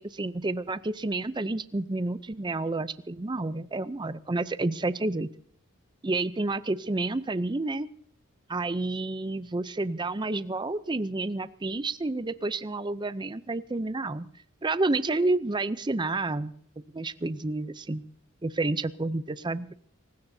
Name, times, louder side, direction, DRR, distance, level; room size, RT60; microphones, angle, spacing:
voice 1, 0.0-5.3 6.0-7.9 8.5-14.3 14.6-16.5 16.9-18.0 18.4-19.7, right 2 dB, 20° right, 15 dB, 0.5 m, -30 dB
23.0 x 19.0 x 2.7 m, 0.65 s
head